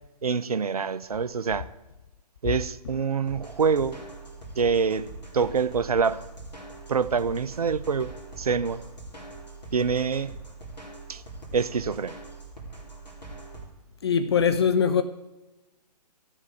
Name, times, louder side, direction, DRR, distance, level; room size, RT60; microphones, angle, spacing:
voice 1, 0.2-1.7 2.4-4.0 4.6-6.3 6.9-8.1 8.4-8.8 9.7-10.3 11.1-11.2 11.5-12.2, right 5 dB, 60° right, 0.6 m, -26 dB
sound 1, 3.3-13.7, right 2 dB, 75° left, 3.9 m, -42 dB
voice 2, 14.0-15.0, left 7 dB, 40° left, 0.5 m, -21 dB
13.0 x 7.4 x 8.0 m
figure-of-eight pair, 130°, 21 cm